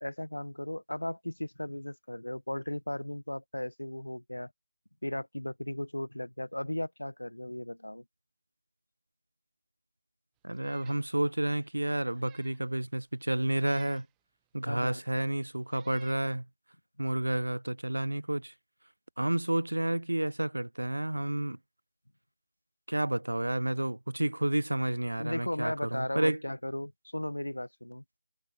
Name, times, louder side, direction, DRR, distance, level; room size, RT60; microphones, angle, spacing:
voice 1, 0.0-4.5 5.0-8.0 14.7-15.0 25.2-28.0, left 1 dB, 90° left, 0.8 m, -36 dB
voice 2, 10.4-14.1 14.5-16.5 17.0-18.5 19.2-21.6 22.9-26.4, right 1 dB, 85° right, 0.4 m, -30 dB
Meow, 10.5-11.0 11.5-11.6 12.1-12.6 13.6-14.1 15.0-15.1 15.7-16.3, right 25 dB, 15° right, 0.4 m, -59 dB
figure-of-eight pair, 155°, 0 cm